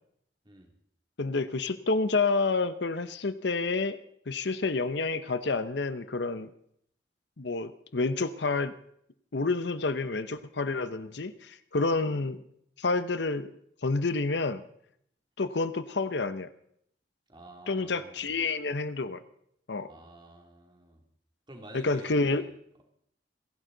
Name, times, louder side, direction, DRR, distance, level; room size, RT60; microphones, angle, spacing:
voice 1, 1.2-4.0 4.3-6.5 7.4-8.7 9.3-12.4 12.8-13.5 13.8-14.6 15.4-16.5 17.7-19.2 19.7-19.9 21.7-22.4, left 3 dB, 70° left, 12 dB, 0.9 m, -29 dB
voice 2, 17.3-18.3 19.9-21.0 21.5-22.5, right 1 dB, 25° right, 2 dB, 2.8 m, -49 dB
28.5 x 11.0 x 4.0 m, 0.70 s
head